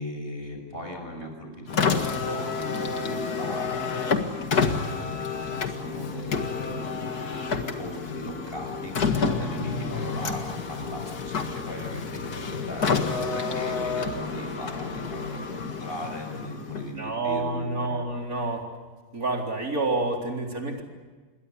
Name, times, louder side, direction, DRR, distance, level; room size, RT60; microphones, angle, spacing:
voice 1, 0.0-3.9 4.5-7.0 7.5-18.1, equal, 30° left, 4 dB, 6.4 m, -38 dB
Car, 1.7-17.1, left 5 dB, 55° left, 2.4 m, -29 dB
voice 2, 17.0-18.6 19.1-20.8, right 2 dB, 50° right, 1 dB, 4.3 m, -28 dB
28.0 x 22.0 x 8.3 m, 1.3 s
omnidirectional pair, 2.0 m